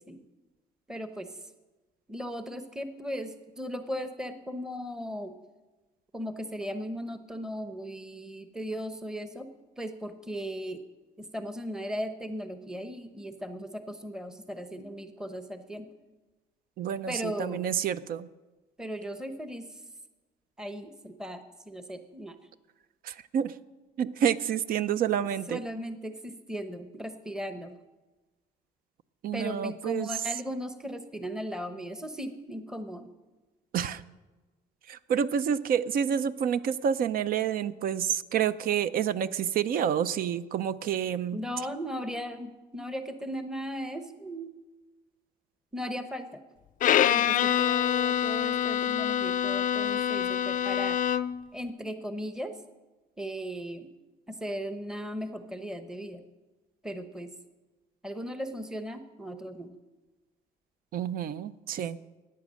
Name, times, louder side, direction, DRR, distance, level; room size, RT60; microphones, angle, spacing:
voice 1, 0.9-1.5 2.1-5.3 6.1-9.5 9.8-10.8 11.2-15.9 17.1-17.7 18.8-19.8 20.6-22.4 25.5-27.7 29.3-33.1 41.3-44.5 45.7-46.4 47.1-51.0 51.5-52.6 53.2-53.9 54.3-56.2 56.8-57.3 58.0-59.7, equal, 5° right, 9 dB, 0.8 m, -37 dB
voice 2, 16.8-18.3 23.0-23.5 24.0-25.6 29.2-30.1 33.7-34.0 34.9-41.4 60.9-62.0, right 8 dB, 60° right, 15 dB, 0.6 m, -28 dB
Bowed string instrument, 46.8-51.5, left 10 dB, 50° left, 0.5 m, -26 dB
14.0 x 9.4 x 6.3 m, 1.2 s
cardioid pair, 110°, 17 cm